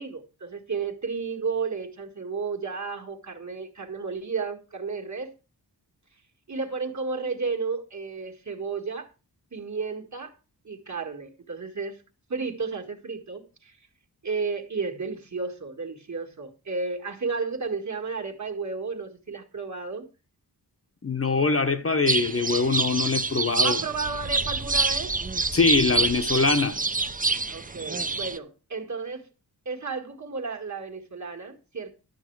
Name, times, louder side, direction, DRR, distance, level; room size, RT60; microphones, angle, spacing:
voice 1, 0.0-5.3 6.5-9.1 9.5-10.3 10.6-12.0 12.3-13.8 14.2-20.1 23.6-25.1 27.5-29.3 29.7-31.9, right 4 dB, 45° right, 1.9 m, -32 dB
voice 2, 21.0-23.8 25.5-26.8, left 4 dB, 35° left, 1.0 m, -23 dB
sound 1, 22.1-28.4, right 3 dB, 20° right, 0.6 m, -27 dB
12.0 x 7.6 x 4.7 m
wide cardioid pair, 90°, 41 cm